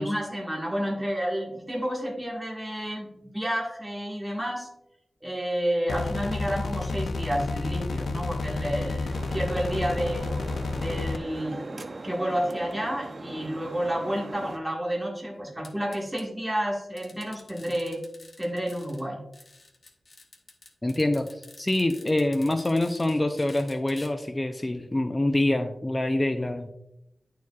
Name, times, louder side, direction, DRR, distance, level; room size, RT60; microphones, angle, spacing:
voice 1, 0.0-4.7 5.2-10.3 10.7-18.0 18.4-19.2, equal, 5° right, -3 dB, 1.6 m, -30 dB
sound 1, 5.9-11.2, left 3 dB, 85° left, 0.4 m, -30 dB
sound 2, 9.1-14.6, right 2 dB, 45° right, 0.5 m, -40 dB
sound 3, 15.6-16.3 17.0-19.0 19.3-24.1, left 3 dB, 50° left, 1.0 m, -50 dB
voice 2, 20.8-21.3 21.6-26.7, left 1 dB, 20° left, 7 dB, 0.4 m, -25 dB
10.5 x 4.7 x 2.3 m, 0.84 s
wide cardioid pair, 115°, 0 cm